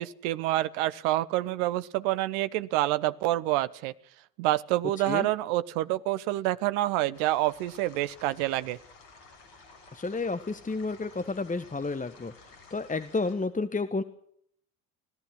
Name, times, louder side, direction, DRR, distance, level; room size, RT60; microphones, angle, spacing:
voice 1, 0.0-3.9 4.4-8.8, right 15 dB, 65° right, 15 dB, 1.1 m, -27 dB
sound 1, 7.1-13.3, left 4 dB, 65° left, 6.7 m, -53 dB
voice 2, 9.9-14.0, left 3 dB, 15° left, 11 dB, 1.5 m, -31 dB
26.0 x 17.0 x 6.2 m, 0.68 s
figure-of-eight pair, 50°, 47 cm